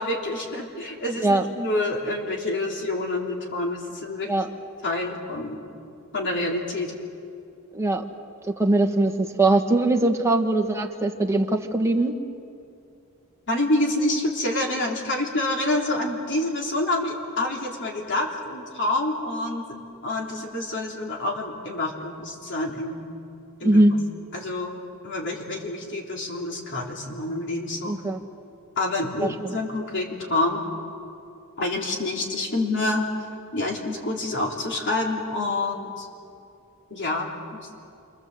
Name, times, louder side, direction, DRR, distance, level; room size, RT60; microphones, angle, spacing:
voice 1, 0.0-4.3 4.8-5.6 6.1-6.9 13.5-19.7 20.0-23.0 23.6-23.8 24.3-27.9 28.8-30.6 31.6-33.0 33.5-36.1 36.9-37.3, left 2 dB, 55° left, -1 dB, 3.5 m, -27 dB
voice 2, 1.2-1.5 4.2-4.5 7.7-8.0 8.5-12.1 23.6-24.0 27.9-28.2 29.2-29.6, right 2 dB, 15° right, 3 dB, 1.6 m, -21 dB
30.0 x 24.0 x 7.9 m, 2.5 s
head